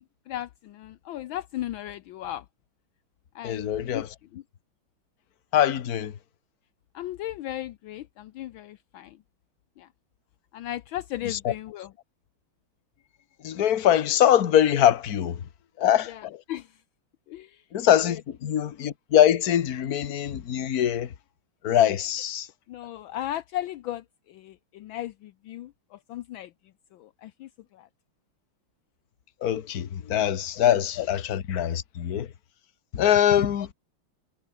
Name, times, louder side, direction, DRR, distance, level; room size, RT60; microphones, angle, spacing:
voice 1, 0.0-2.5 3.3-4.4 6.9-9.2 9.8-9.9 10.5-11.9 16.1-16.8 17.3-17.6 18.1-18.5 22.7-26.5 26.9-27.9 31.0-31.1, left 13 dB, 75° left, 1.4 m, -36 dB
voice 2, 3.4-4.1 5.5-6.2 11.3-11.5 13.4-15.4 15.8-16.1 17.7-21.1 21.6-22.5 29.4-32.3 32.9-33.7, left 10 dB, 50° left, 1.5 m, -23 dB
omnidirectional pair, 2.3 m